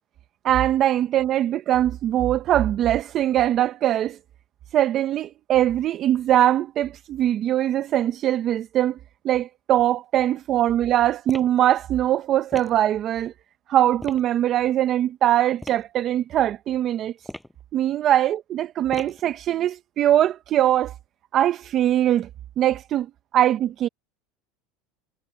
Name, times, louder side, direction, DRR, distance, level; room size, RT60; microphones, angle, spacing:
voice 1, 0.4-4.2 4.7-9.0 9.2-13.3 13.7-17.1 17.7-20.9 21.3-22.3 22.6-23.1 23.3-23.9, right 12 dB, 45° right, 1.0 m, -21 dB
sound 1, 11.3-11.6 12.5-12.8 14.0-14.3 15.6-15.8 17.2-17.6 18.9-19.3, left 1 dB, 5° left, 7.6 m, -38 dB
supercardioid pair, 110°, 0 cm